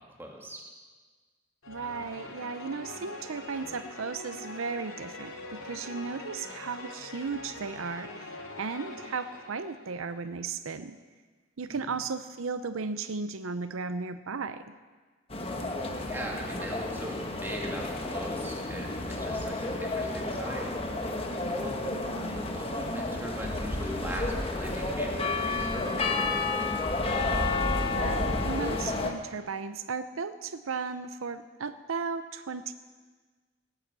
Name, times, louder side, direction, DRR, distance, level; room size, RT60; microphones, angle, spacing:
voice 1, 0.2-0.6 11.7-12.0 15.8-20.7 21.6-21.8 22.2-26.3, equal, 10° right, -1 dB, 2.4 m, -40 dB
sound 1, 1.6-10.2, left 2 dB, 90° left, 2.4 m, -43 dB
voice 2, 1.7-11.0 11.6-14.6 21.9-22.5 27.8-32.7, right 4 dB, 85° right, 11 dB, 0.6 m, -35 dB
sound 2, 15.3-29.1, left 2 dB, 25° left, 1.3 m, -31 dB
18.5 x 9.9 x 7.4 m, 1.4 s
head